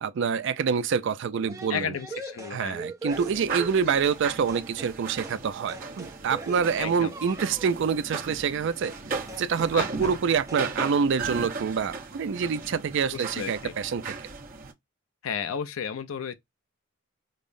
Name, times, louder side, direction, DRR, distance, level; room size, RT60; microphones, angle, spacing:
voice 1, 0.0-1.9 2.5-8.9 9.4-14.2, right 6 dB, 60° right, 0.4 m, -26 dB
sound 1, 1.5-4.2 4.5-5.0 5.2-5.4 5.7-7.8 8.8-9.0 9.3-9.8 10.0-10.2 10.5-11.0, right 2 dB, 15° right, 0.7 m, -40 dB
voice 2, 1.7-2.8 6.8-7.1 9.7-9.9 13.1-13.7 15.2-16.3, left 7 dB, 70° left, 0.5 m, -33 dB
sound 2, 3.1-14.7, right 4 dB, 40° right, 0.9 m, -37 dB
5.2 x 2.0 x 2.6 m
head